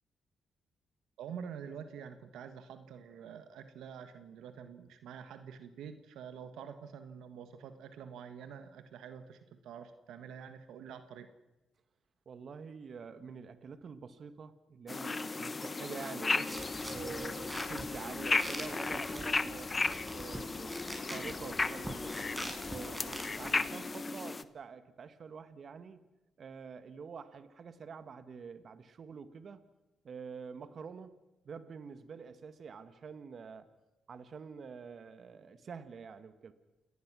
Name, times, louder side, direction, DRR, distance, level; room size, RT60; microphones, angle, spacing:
voice 1, 1.2-11.3, right 7 dB, 85° right, 9 dB, 1.5 m, -47 dB
voice 2, 12.2-16.5 16.9-22.1 22.7-26.0 26.4-29.6 30.0-31.1 31.4-33.7 34.1-36.5, right 6 dB, 60° right, 11 dB, 1.7 m, -47 dB
sound 1, 14.9-24.4, left 3 dB, 35° left, 1.2 m, -35 dB
sound 2, 16.5-23.7, right 1 dB, 15° right, 6.7 m, -45 dB
29.0 x 18.5 x 6.2 m, 1.0 s
supercardioid pair, 60°, 0 cm